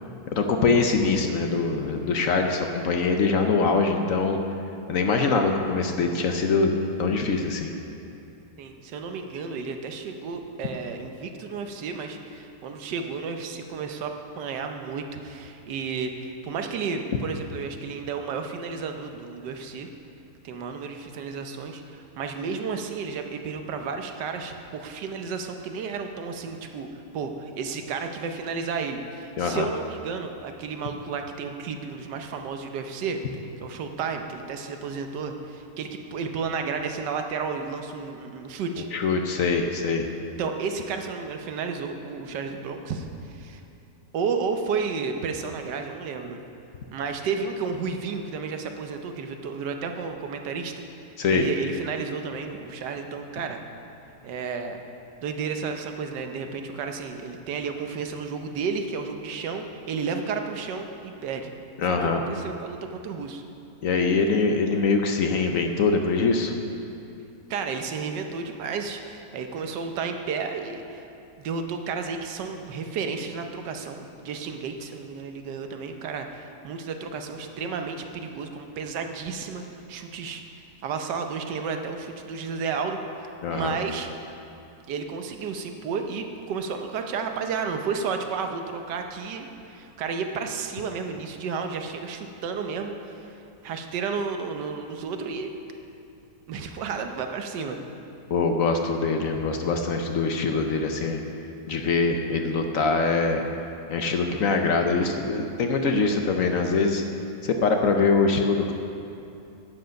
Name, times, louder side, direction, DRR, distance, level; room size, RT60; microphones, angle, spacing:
voice 1, 0.3-4.4 4.9-6.7 7.0-7.7 29.4-29.7 38.8-40.1 51.2-51.5 61.8-62.2 63.8-66.5 83.4-83.8 98.3-101.2 101.7-103.5 103.9-107.0 107.4-108.7, left 4 dB, 60° left, 4 dB, 0.9 m, -23 dB
voice 2, 8.6-19.9 20.4-26.9 27.1-33.2 33.6-38.9 40.4-43.6 44.1-46.4 46.9-50.7 51.3-53.6 54.2-54.8 55.2-61.5 61.8-63.4 67.5-71.1 71.4-79.6 79.9-83.0 83.5-84.1 84.9-93.4 93.6-95.5 96.5-97.8, right 5 dB, 85° right, 5 dB, 1.4 m, -32 dB
11.5 x 8.0 x 5.2 m, 2.7 s
omnidirectional pair, 1.8 m